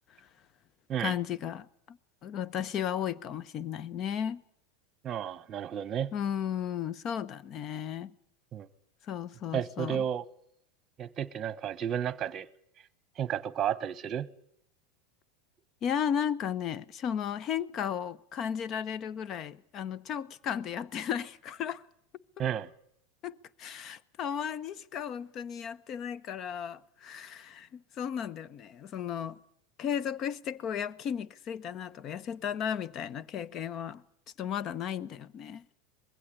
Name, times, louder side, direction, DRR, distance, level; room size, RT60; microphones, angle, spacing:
voice 1, 1.0-2.0 2.2-4.4 6.1-8.1 9.1-10.0 15.8-21.8 23.2-29.4 29.8-34.0 34.4-35.6, left 8 dB, 40° left, 0.9 m, -34 dB
voice 2, 5.0-6.1 8.5-8.7 9.5-10.2 11.0-12.5 13.2-14.3 22.4-22.7, right 9 dB, 35° right, 1.0 m, -32 dB
21.5 x 16.0 x 9.9 m
supercardioid pair, 115°, 0 cm